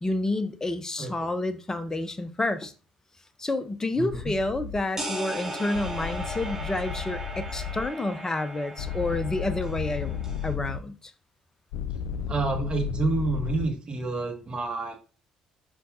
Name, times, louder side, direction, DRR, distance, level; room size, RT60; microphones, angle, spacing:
voice 1, 0.0-2.7 3.4-10.2 10.4-11.1, left 2 dB, 20° left, 0.8 m, -29 dB
voice 2, 3.9-4.3 12.3-14.9, right 3 dB, 35° right, 1.9 m, -29 dB
sound 1, 4.1-4.8 5.7-7.9 8.8-10.8 11.7-13.7, left 8 dB, 75° left, 0.4 m, -33 dB
sound 2, 5.0-10.5, right 1 dB, 15° right, 4.1 m, -37 dB
7.9 x 5.7 x 2.7 m
hypercardioid pair, 50°, 3 cm